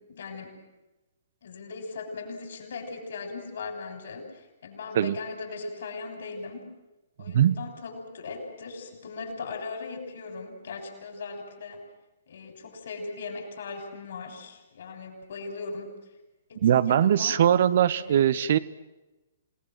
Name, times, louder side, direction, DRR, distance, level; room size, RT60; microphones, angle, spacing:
voice 1, 0.1-0.5 1.4-6.7 7.2-11.8 12.3-15.9 16.5-17.4 17.9-18.4, left 4 dB, 60° left, 4 dB, 7.0 m, -39 dB
voice 2, 16.6-18.6, right 10 dB, 50° right, 15 dB, 1.0 m, -21 dB
28.0 x 19.5 x 7.8 m, 1.0 s
figure-of-eight pair, 120°, 0 cm